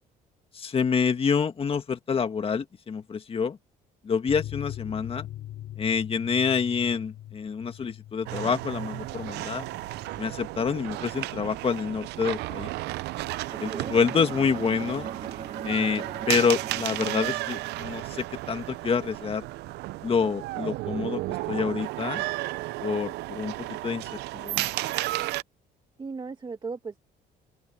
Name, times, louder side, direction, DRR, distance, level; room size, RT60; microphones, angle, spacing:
voice 1, 0.5-3.6 4.0-5.3 5.8-9.7 10.2-12.7 13.6-15.1 15.6-19.4 20.0-21.2 21.5-22.2 22.8-24.1 24.3-24.7, left 6 dB, 35° left, 2.0 m, -27 dB
sound 1, 4.3-11.4 11.6-11.7 12.1-12.2, left 13 dB, 75° left, 3.0 m, -42 dB
sound 2, 8.3-25.4, right 18 dB, 80° right, 0.5 m, -33 dB
voice 2, 13.5-14.2 26.0-27.0, right 4 dB, 25° right, 1.5 m, -38 dB
Bowed string instrument, 13.5-18.4, right 7 dB, 40° right, 1.7 m, -39 dB
cardioid pair, 110°, 17 cm